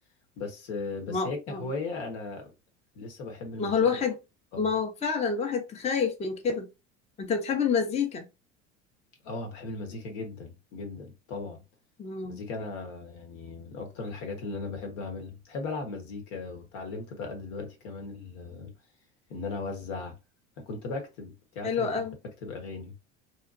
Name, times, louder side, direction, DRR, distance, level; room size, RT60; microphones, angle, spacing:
voice 1, 0.4-2.5 2.9-3.9 4.5-4.7 9.2-11.6 12.2-18.7 19.3-20.2 20.6-21.9 22.4-22.9, left 3 dB, 65° left, 1.2 m, -37 dB
voice 2, 1.1-1.6 3.6-4.1 4.6-6.7 7.2-8.3 12.0-12.4 21.6-22.2, left 6 dB, 20° left, 0.6 m, -28 dB
2.8 x 2.1 x 2.5 m
hypercardioid pair, 80°, 37 cm